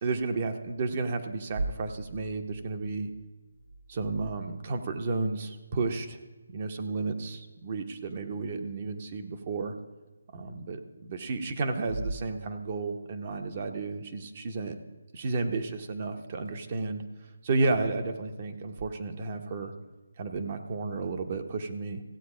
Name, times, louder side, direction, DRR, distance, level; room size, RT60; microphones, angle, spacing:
voice 1, 0.0-3.1 3.9-6.2 6.5-9.7 10.3-14.8 15.1-17.0 17.4-19.7 20.2-22.0, right 3 dB, 30° right, 6 dB, 0.9 m, -32 dB
sound 1, 1.4-4.9 9.4-9.5 10.4-10.5 11.8-13.1 18.7-18.8, right 2 dB, 55° right, 1.5 m, -40 dB
15.5 x 7.9 x 5.0 m, 1.2 s
figure-of-eight pair, 165°, 0 cm